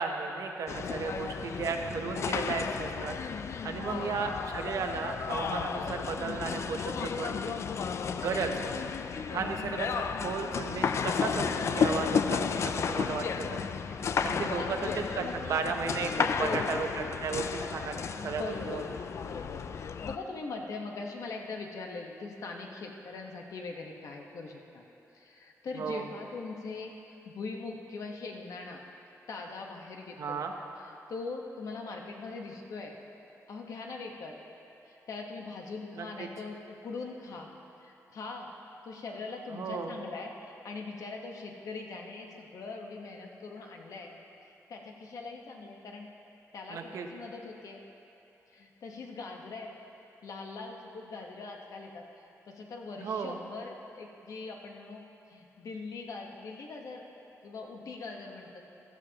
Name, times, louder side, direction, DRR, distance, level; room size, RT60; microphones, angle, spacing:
voice 1, 0.0-3.2 3.6-7.6 8.2-8.5 9.3-9.9 10.2-13.6 14.2-18.0 18.2-18.8 25.7-26.0 30.2-30.5 36.0-36.3 39.5-40.0 46.7-47.1 53.0-53.4, right 5 dB, 65° right, 4 dB, 0.9 m, -34 dB
sound 1, 0.7-20.2, left 6 dB, 50° left, 0.4 m, -33 dB
voice 2, 3.8-4.3 9.2-9.5 14.5-15.6 16.4-16.8 18.2-18.9 19.2-19.6 20.0-24.8 25.1-28.8 29.3-30.4 30.8-32.9 33.5-34.3 34.9-37.5 37.8-38.5 38.8-44.1 44.7-46.1 46.5-47.8 48.5-49.7 50.2-52.0 52.5-55.0 55.3-58.6, left 3 dB, 70° left, 1 dB, 1.2 m, -41 dB
15.5 x 12.5 x 2.9 m, 2.8 s
wide cardioid pair, 170°, 6 cm